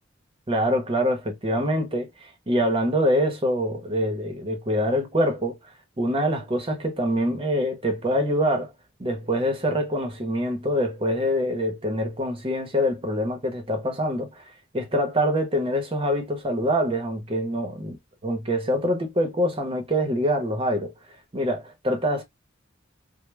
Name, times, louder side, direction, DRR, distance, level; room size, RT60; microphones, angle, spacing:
voice 1, 0.5-5.6 6.0-8.7 9.0-14.4 14.7-18.0 18.2-20.9 21.3-22.2, equal, 25° right, 0.7 m, -25 dB
2.1 x 2.0 x 3.1 m
head